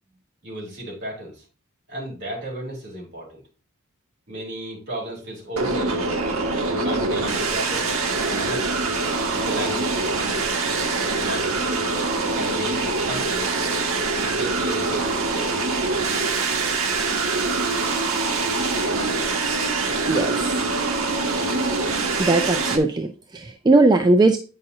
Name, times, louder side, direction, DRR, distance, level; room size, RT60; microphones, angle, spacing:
voice 1, 0.4-1.4 1.9-3.4 4.3-6.4 6.7-7.9 8.2-8.7 9.3-10.5 11.0-11.8 12.3-13.4 14.2-15.6, right 1 dB, 55° right, -4 dB, 3.4 m, -34 dB
sound 1, 5.6-22.8, right 3 dB, 85° right, 1.0 m, -24 dB
voice 2, 20.1-20.5 22.2-24.4, right 2 dB, 20° right, 6 dB, 0.4 m, -19 dB
8.6 x 5.5 x 2.7 m, 0.36 s
head